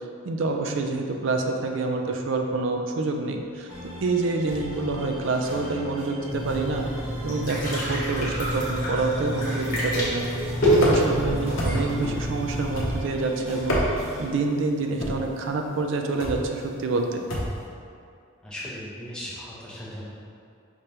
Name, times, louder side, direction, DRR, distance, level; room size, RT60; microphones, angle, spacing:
voice 1, 0.2-3.7 4.0-6.9 7.2-13.8 14.2-17.2, right 3 dB, 60° right, 3 dB, 0.4 m, -27 dB
sound 1, 3.7-14.3, equal, 75° right, 1.3 m, -39 dB
sound 2, 6.3-13.0, equal, 40° left, 1.3 m, -27 dB
sound 3, 10.8-11.2 11.6-12.0 12.8-13.2 13.6-14.2 15.0-15.3 16.2-16.5 17.3-17.6, equal, 65° left, 0.8 m, -27 dB
voice 2, 18.4-20.1, equal, 5° left, -7 dB, 0.7 m, -37 dB
5.1 x 3.3 x 2.8 m, 2.4 s
head